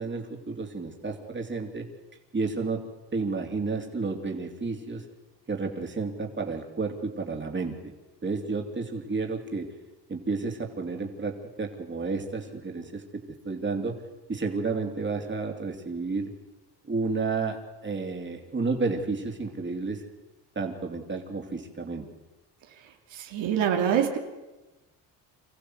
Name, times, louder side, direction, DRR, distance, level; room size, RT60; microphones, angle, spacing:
voice 1, 0.0-1.9 2.3-2.8 3.1-5.0 5.5-7.7 8.2-9.7 10.1-13.0 13.4-14.0 14.3-16.3 16.8-20.0 20.5-22.0, right 4 dB, 25° right, 3 dB, 3.1 m, -31 dB
voice 2, 23.1-24.2, right 8 dB, 75° right, 3 dB, 2.6 m, -25 dB
26.0 x 15.0 x 8.0 m, 1.1 s
cardioid pair, 100°, 45 cm